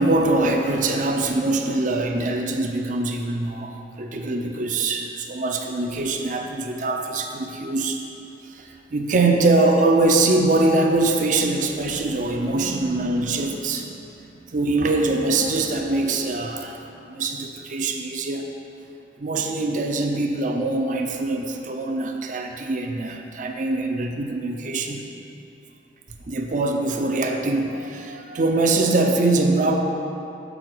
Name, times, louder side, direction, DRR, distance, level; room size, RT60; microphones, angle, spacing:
voice 1, 0.0-8.0 8.5-14.0 14.5-16.8 17.1-18.5 19.2-25.0 26.3-29.8, right 2 dB, 45° right, 3 dB, 0.6 m, -23 dB
6.2 x 4.6 x 6.6 m, 2.7 s
head